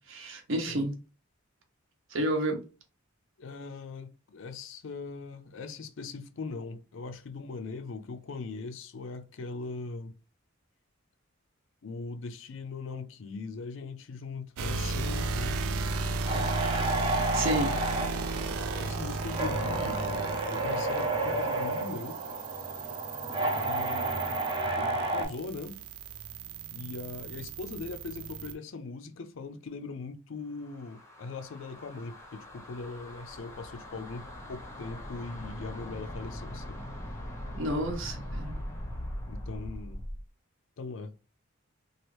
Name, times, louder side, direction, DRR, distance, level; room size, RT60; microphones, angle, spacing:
voice 1, 0.1-0.9 2.1-2.6 17.3-17.7 37.5-38.6, right 1 dB, 65° right, 0.8 m, -30 dB
voice 2, 3.4-10.1 11.8-15.6 16.2-16.6 18.4-20.0 20.5-22.2 23.4-24.4 24.7-25.8 26.7-36.8 39.3-40.1 40.8-41.1, left 4 dB, 65° left, 0.4 m, -40 dB
sound 1, 14.6-28.5, right 3 dB, 90° right, 0.4 m, -35 dB
sound 2, 16.3-25.3, right 2 dB, 20° right, 0.7 m, -31 dB
sound 3, 30.5-40.3, left 1 dB, 15° left, 0.6 m, -41 dB
3.0 x 2.4 x 3.1 m
head